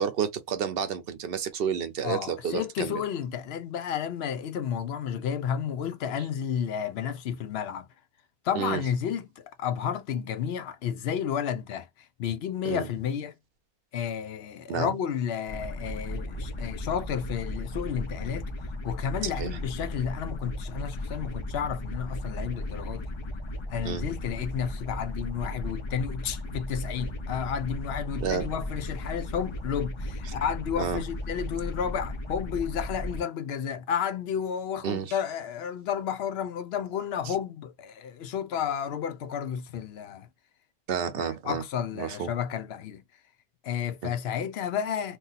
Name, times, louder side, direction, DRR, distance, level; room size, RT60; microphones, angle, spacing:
voice 1, 0.0-3.0 8.6-8.8 12.6-12.9 14.7-14.9 19.4-19.6 23.8-24.0 28.2-28.5 30.8-31.0 34.8-35.1 37.3-37.4 40.9-41.6 42.0-42.3 44.0-44.1, right 7 dB, 70° right, 0.8 m, -30 dB
voice 2, 2.0-7.9 8.4-13.3 13.9-23.1 23.7-40.3 41.2-43.0 43.6-45.2, left 8 dB, 80° left, 0.8 m, -32 dB
sound 1, 15.5-33.2, left 1 dB, 40° left, 0.4 m, -35 dB
2.7 x 2.3 x 3.9 m
omnidirectional pair, 1.0 m